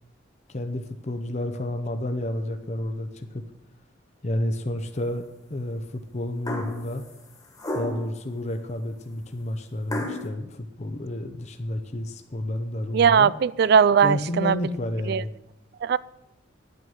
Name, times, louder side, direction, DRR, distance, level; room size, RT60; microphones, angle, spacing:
voice 1, 0.5-3.4 4.2-7.0 7.7-13.3 14.0-15.3, left 1 dB, 35° left, 0.7 m, -30 dB
sound 1, 6.5-6.9 7.6-8.1 9.9-10.3, left 1 dB, 20° left, 1.6 m, -31 dB
voice 2, 12.9-14.5 15.1-15.2 15.8-16.0, right 7 dB, 55° right, 0.3 m, -19 dB
9.3 x 9.1 x 6.3 m
head